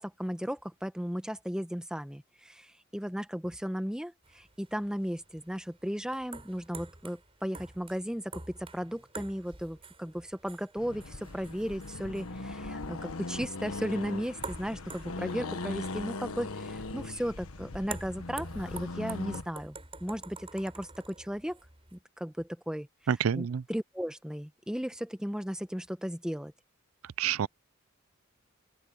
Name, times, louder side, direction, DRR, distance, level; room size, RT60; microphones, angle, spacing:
voice 1, 0.0-19.8 20.0-21.6 21.9-22.9 23.3-26.5, equal, 5° right, 1.0 m, -35 dB
sound 1, 4.2-22.0, right 4 dB, 25° right, 5.4 m, -48 dB
Accelerating revving vroom, 10.8-19.5, left 2 dB, 85° left, 1.4 m, -39 dB
voice 2, 23.1-23.6 27.2-27.5, right 8 dB, 75° right, 0.4 m, -28 dB
open air
head